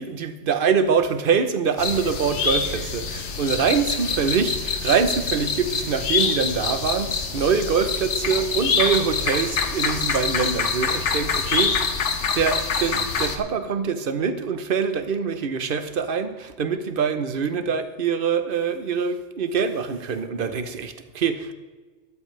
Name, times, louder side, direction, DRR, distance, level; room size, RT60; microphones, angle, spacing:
voice 1, 0.0-11.9 12.3-21.5, right 6 dB, 55° right, 10 dB, 1.1 m, -24 dB
sound 1, 1.8-13.4, left 5 dB, 90° left, 1.3 m, -25 dB
13.5 x 12.5 x 3.3 m, 1.3 s
omnidirectional pair, 1.2 m